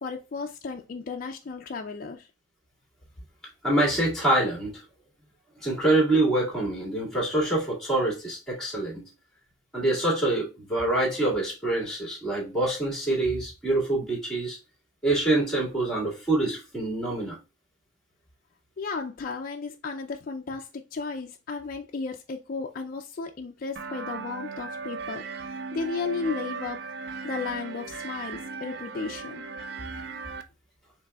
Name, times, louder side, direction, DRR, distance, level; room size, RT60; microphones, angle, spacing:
voice 1, 0.0-2.3 18.8-26.9 27.2-29.4, left 4 dB, 45° left, 0.4 m, -34 dB
voice 2, 3.6-4.8 5.6-9.0 9.7-14.6 15.0-17.4, right 2 dB, 5° left, 1.9 m, -25 dB
sound 1, 23.7-30.4, right 4 dB, 55° right, 0.4 m, -37 dB
5.1 x 3.3 x 2.3 m
head